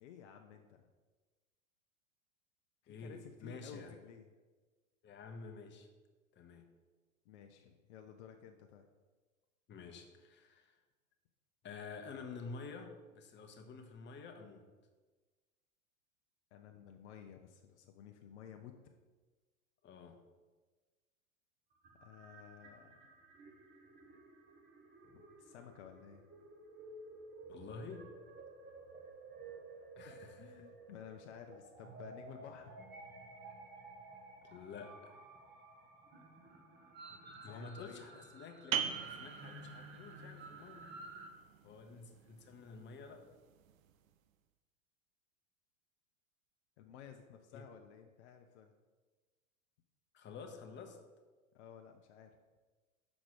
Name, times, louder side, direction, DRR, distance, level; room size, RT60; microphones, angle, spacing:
voice 1, 0.0-0.9 2.8-4.3 7.3-8.9 16.5-18.7 22.0-23.0 25.4-26.2 30.0-32.7 37.1-38.0 41.7-41.9 46.8-48.7 51.5-52.3, left 8 dB, 55° left, 4 dB, 0.7 m, -54 dB
voice 2, 2.9-3.9 5.0-5.9 6.3-6.7 9.7-10.8 11.6-14.7 19.8-20.2 27.5-28.1 30.0-30.7 34.4-35.2 37.4-40.9 41.6-43.3 47.5-47.6 50.1-51.0, left 4 dB, 25° left, 5 dB, 1.0 m, -50 dB
sound 1, 21.8-41.3, right 2 dB, 25° right, 1.2 m, -54 dB
sound 2, 38.7-44.1, right 8 dB, 75° right, 0.7 m, -43 dB
6.2 x 5.0 x 6.2 m, 1.3 s
hypercardioid pair, 100°, 42 cm